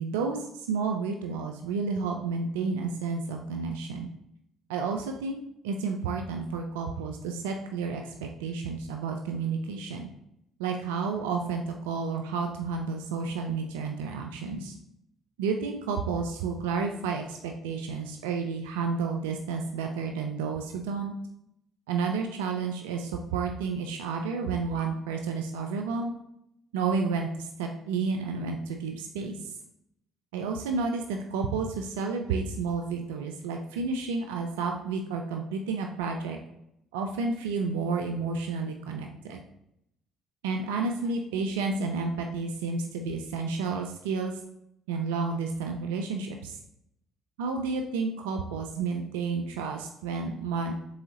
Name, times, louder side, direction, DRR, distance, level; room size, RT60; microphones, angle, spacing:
voice 1, 0.0-4.1 4.7-5.4 5.6-10.1 10.6-14.7 15.4-21.1 21.9-26.1 26.7-29.4 30.3-36.4 36.9-39.4 40.4-44.4 44.9-46.6 47.4-50.7, right 4 dB, 80° right, 3 dB, 0.3 m, -31 dB
4.7 x 3.8 x 2.7 m, 0.78 s
hypercardioid pair, 55°, 0 cm